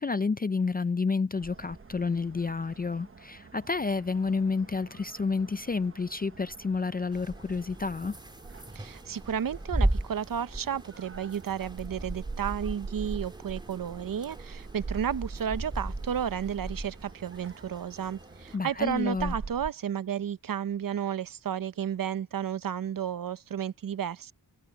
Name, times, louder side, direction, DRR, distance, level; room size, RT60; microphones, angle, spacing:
voice 1, 0.0-8.2 18.5-19.3, left 4 dB, 25° left, 0.4 m, -30 dB
sound 1, 1.3-19.7, right 4 dB, 30° right, 1.1 m, -44 dB
sound 2, 7.1-18.6, right 1 dB, 10° right, 4.0 m, -37 dB
voice 2, 8.7-24.3, right 8 dB, 55° right, 0.8 m, -32 dB
wide cardioid pair, 140°, 40 cm